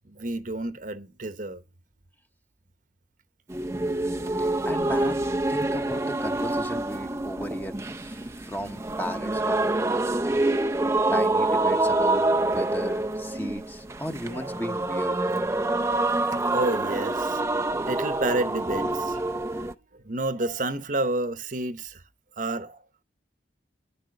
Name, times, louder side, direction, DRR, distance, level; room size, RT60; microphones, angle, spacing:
voice 1, 0.0-1.6 4.2-4.7 14.3-14.6 15.9-16.0 16.5-22.0 22.4-22.8, right 2 dB, 45° right, 1.0 m, -31 dB
sound 1, 3.5-19.7, right 2 dB, 15° right, 0.6 m, -26 dB
voice 2, 4.4-10.3 11.1-15.2, equal, 10° left, 1.1 m, -36 dB
10.5 x 8.7 x 6.7 m
head